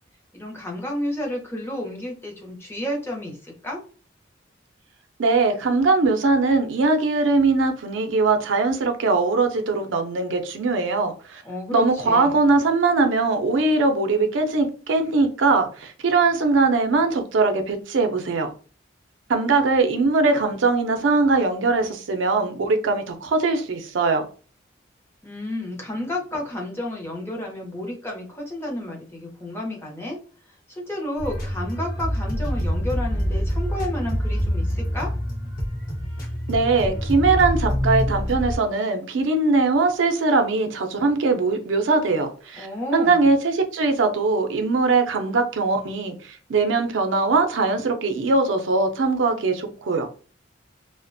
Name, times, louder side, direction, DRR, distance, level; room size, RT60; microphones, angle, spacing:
voice 1, 0.3-3.8 11.4-12.4 25.2-30.2 30.7-35.1 42.6-43.3, left 1 dB, 15° left, 0.6 m, -31 dB
voice 2, 5.2-11.4 11.7-18.5 19.3-24.2 36.5-42.7 42.9-50.1, right 3 dB, 80° right, 0.5 m, -21 dB
sound 1, 31.2-38.6, equal, 45° left, 0.8 m, -26 dB
2.4 x 2.1 x 2.6 m
head